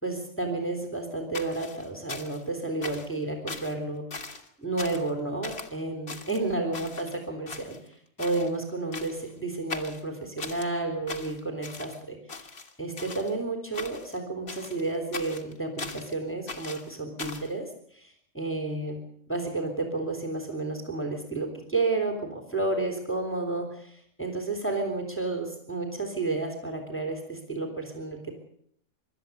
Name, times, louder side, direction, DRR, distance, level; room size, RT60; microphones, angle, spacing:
voice 1, 0.0-4.2 4.6-7.7 8.2-12.4 12.8-17.7 17.9-19.0 19.3-28.3, right 2 dB, 10° left, 4 dB, 3.5 m, -31 dB
sound 1, 1.3-2.5 2.8-3.2 3.5-3.8 4.1-4.5 4.8-5.1 5.4-5.7 6.1-7.2 7.5-8.5 8.9-9.3 9.7-10.7 11.1-12.0 12.3-13.3 13.7-14.2 14.5-16.1 16.5-17.5, left 4 dB, 45° left, 2.0 m, -40 dB
25.0 x 13.0 x 8.2 m, 0.67 s
omnidirectional pair, 1.5 m